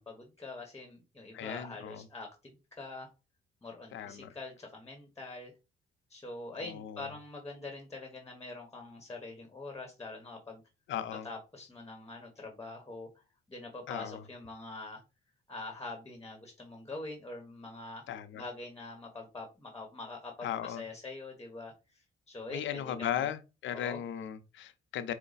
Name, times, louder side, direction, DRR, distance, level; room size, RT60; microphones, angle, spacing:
voice 1, 0.0-3.1 3.6-5.5 6.1-10.6 11.2-13.2 13.5-15.0 15.5-18.0 18.3-23.3 23.7-24.0, left 2 dB, 15° left, 1.2 m, -44 dB
voice 2, 1.3-2.0 3.9-4.3 6.6-7.1 10.9-11.3 13.9-14.2 18.1-18.4 20.4-20.8 22.5-25.1, left 10 dB, 75° left, 0.7 m, -37 dB
4.7 x 2.2 x 4.0 m
cardioid pair, 90°, 20 cm